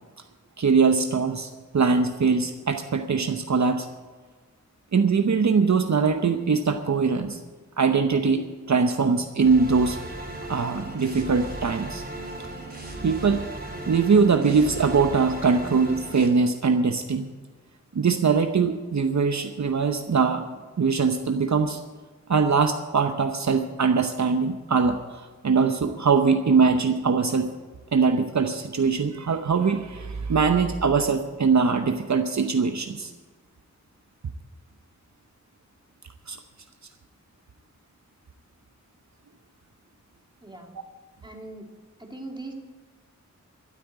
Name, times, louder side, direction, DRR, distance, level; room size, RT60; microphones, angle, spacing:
voice 1, 0.6-3.9 4.9-7.4 7.8-10.0 10.5-12.0 13.0-13.4 13.9-17.3 17.9-20.5 20.8-21.8 22.3-27.5 27.9-33.1 36.3-36.4, right 5 dB, 65° right, 7 dB, 0.8 m, -22 dB
sound 1, 9.4-16.3, right 1 dB, 30° right, 3.7 m, -36 dB
voice 2, 40.4-40.7 41.2-41.7 42.0-42.5, right 2 dB, 15° right, 1 dB, 2.6 m, -40 dB
13.0 x 8.5 x 8.7 m, 1.4 s
wide cardioid pair, 75°, 30 cm